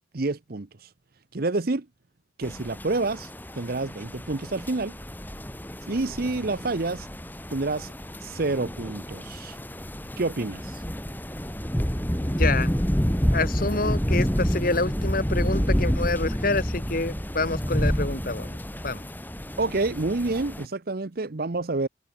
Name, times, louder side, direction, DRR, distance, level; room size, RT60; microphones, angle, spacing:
voice 1, 0.1-0.7 1.3-1.9 2.4-3.3 3.5-5.0 5.9-7.1 7.5-7.9 8.2-9.6 10.2-10.8 19.6-21.9, right 3 dB, 50° right, 0.8 m, -28 dB
sound 1, 2.4-20.6, equal, 10° left, 2.9 m, -29 dB
voice 2, 12.2-12.7 13.3-18.6 18.8-19.0, left 3 dB, 45° left, 2.1 m, -27 dB
head